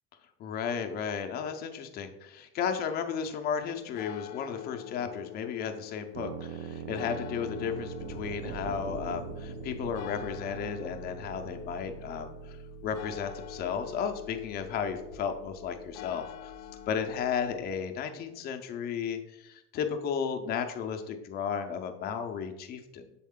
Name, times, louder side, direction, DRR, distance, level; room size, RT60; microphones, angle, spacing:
voice 1, 0.4-12.3 12.8-16.3 16.9-19.2 19.4-23.0, left 7 dB, 30° left, 6 dB, 0.5 m, -34 dB
sound 1, 3.7-17.3, left 15 dB, 85° left, 0.5 m, -46 dB
sound 2, 6.1-17.8, right 9 dB, 80° right, 0.5 m, -45 dB
sound 3, 8.0-11.7, right 3 dB, 50° right, 0.8 m, -44 dB
6.3 x 4.2 x 3.6 m, 0.90 s
cardioid pair, 180°, 32 cm